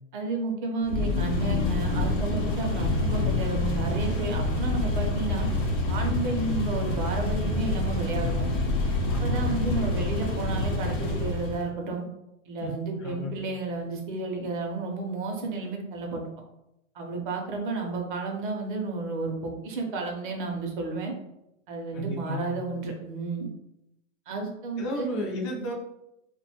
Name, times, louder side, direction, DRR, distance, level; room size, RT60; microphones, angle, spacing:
voice 1, 0.1-5.5 5.9-8.4 9.2-12.0 12.5-16.2 17.0-21.1 21.7-23.5 24.3-25.1 25.5-25.6, right 3 dB, 45° right, 1 dB, 0.6 m, -32 dB
sound 1, 0.8-11.7, left 1 dB, 55° left, 0.8 m, -29 dB
sound 2, 0.9-11.3, left 4 dB, 85° left, 0.6 m, -31 dB
voice 2, 9.1-10.0 12.6-13.4 21.9-22.6 24.8-25.7, equal, 25° left, -2 dB, 0.3 m, -34 dB
2.5 x 2.2 x 2.8 m, 0.86 s
hypercardioid pair, 150°, 38 cm